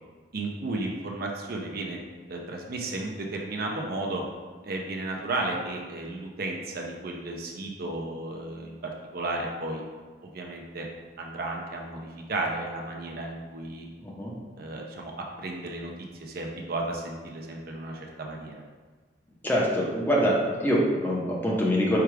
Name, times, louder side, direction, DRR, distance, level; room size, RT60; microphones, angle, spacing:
voice 1, 0.3-2.0 2.3-4.2 4.6-8.7 9.1-9.8 10.2-10.9 11.2-13.9 14.6-15.1 15.4-15.9 16.2-18.6, right 2 dB, 55° right, 0 dB, 0.5 m, -33 dB
voice 2, 14.0-14.3 19.4-22.0, equal, 10° left, -4 dB, 0.7 m, -24 dB
4.7 x 2.3 x 4.6 m, 1.4 s
head